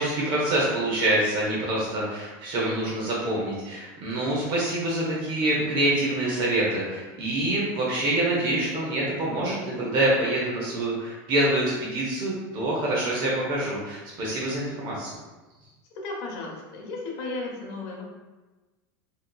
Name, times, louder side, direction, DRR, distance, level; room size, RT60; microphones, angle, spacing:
voice 1, 0.0-15.2, right 1 dB, 45° right, -5 dB, 0.8 m, -26 dB
voice 2, 15.9-18.0, left 3 dB, 50° left, -1 dB, 0.9 m, -34 dB
3.6 x 2.9 x 2.2 m, 1.2 s
supercardioid pair, 145°, 11 cm